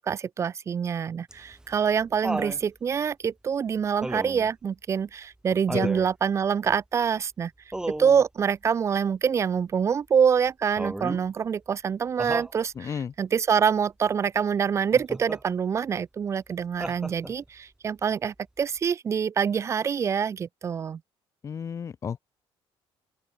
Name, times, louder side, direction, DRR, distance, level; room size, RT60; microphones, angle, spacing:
voice 1, 0.0-7.5 8.0-21.0, right 7 dB, 30° right, 0.3 m, -25 dB
Laughter, 1.3-2.6 4.0-4.5 5.7-6.1 7.7-8.2 10.8-11.3 12.2-12.6 14.9-15.4 16.8-17.5 18.8-18.9, right 1 dB, 5° right, 2.7 m, -33 dB
voice 2, 12.8-13.1 21.4-22.2, left 7 dB, 30° left, 0.7 m, -32 dB
open air
cardioid pair, 150°, 10 cm